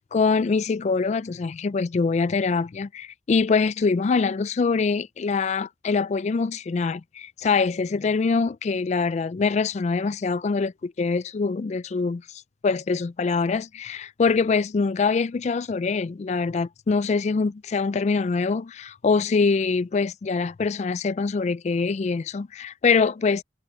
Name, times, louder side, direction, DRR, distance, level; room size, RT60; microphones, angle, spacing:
voice 1, 0.0-23.4, left 4 dB, 40° left, 0.3 m, -24 dB
head